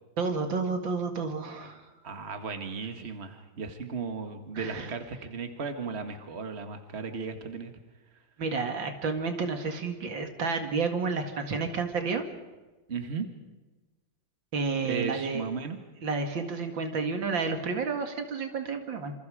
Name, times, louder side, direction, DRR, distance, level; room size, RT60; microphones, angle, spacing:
voice 1, 0.2-1.8 4.5-4.9 8.4-12.3 14.5-15.4 16.0-19.1, right 4 dB, 80° right, 5 dB, 2.7 m, -30 dB
voice 2, 2.0-7.7 12.9-13.3 14.8-15.8, right 5 dB, 35° right, 6 dB, 2.0 m, -35 dB
27.5 x 26.5 x 5.0 m, 1.2 s
omnidirectional pair, 2.0 m